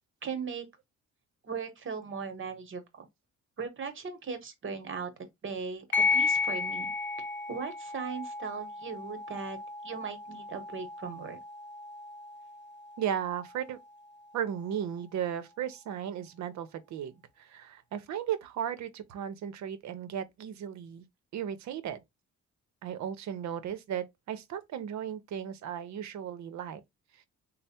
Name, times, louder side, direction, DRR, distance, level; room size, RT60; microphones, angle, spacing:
voice 1, 0.2-0.7 1.4-3.1 3.6-5.1 5.4-6.9 7.5-9.6 9.8-11.4, right 5 dB, 40° right, 1.0 m, -38 dB
sound 1, 5.9-14.9, left 4 dB, 35° left, 0.9 m, -34 dB
voice 2, 13.0-13.8 14.3-17.1 17.4-21.0 21.3-22.0 22.8-26.8, right 9 dB, 65° right, 0.7 m, -35 dB
3.3 x 2.1 x 4.2 m
cardioid pair, 90°, 30 cm